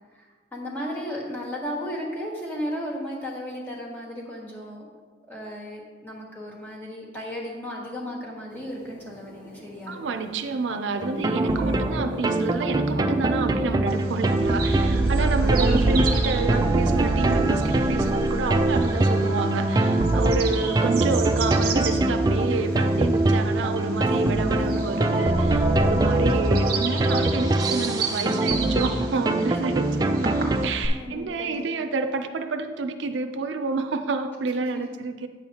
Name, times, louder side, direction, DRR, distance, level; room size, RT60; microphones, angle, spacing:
voice 1, 0.5-4.8 5.3-10.0 14.7-15.5 20.2-20.5 25.9-26.3 30.4-30.5 30.9-31.9, equal, 10° left, -4 dB, 1.4 m, -35 dB
sound 1, 8.5-26.4, equal, 80° left, 1.7 m, -45 dB
voice 2, 9.9-30.3 30.6-35.3, right 4 dB, 80° right, 7 dB, 0.5 m, -29 dB
sound 2, 11.0-30.7, right 2 dB, 20° right, 0.3 m, -23 dB
Bird vocalization bird call bird song, 13.9-30.9, right 5 dB, 50° right, 1.0 m, -36 dB
9.0 x 7.1 x 2.9 m, 1.5 s
head